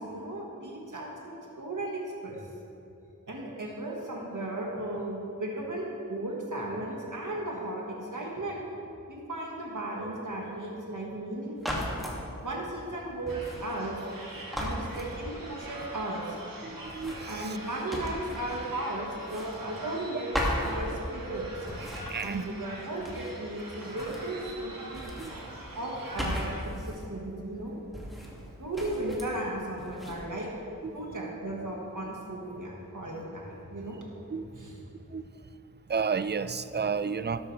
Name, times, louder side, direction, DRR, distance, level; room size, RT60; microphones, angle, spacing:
voice 1, 0.0-2.4 3.3-8.6 9.1-11.8 12.4-14.0 14.6-16.4 17.3-21.5 22.2-25.0 25.7-26.4 26.8-27.8 28.6-30.5 30.9-34.0 34.5-34.8, right 1 dB, 65° right, 1.6 m, -35 dB
sound 1, 11.6-12.2 13.3-14.2 14.5-15.6 16.8-18.7 19.1-20.1 20.3-21.3 21.6-23.5 23.7-24.6 24.9-27.1 27.9-28.5 28.7-29.4 29.8-30.2, equal, ahead, 2.2 m, -37 dB
sound 2, 13.3-26.6, right 1 dB, 85° right, 1.4 m, -44 dB
voice 2, 16.6-17.6 22.1-22.5 25.2-25.3 34.3-34.5 35.1-35.2 35.9-37.5, right 5 dB, 30° right, 0.4 m, -32 dB
12.5 x 12.5 x 3.3 m
wide cardioid pair, 45°, 33 cm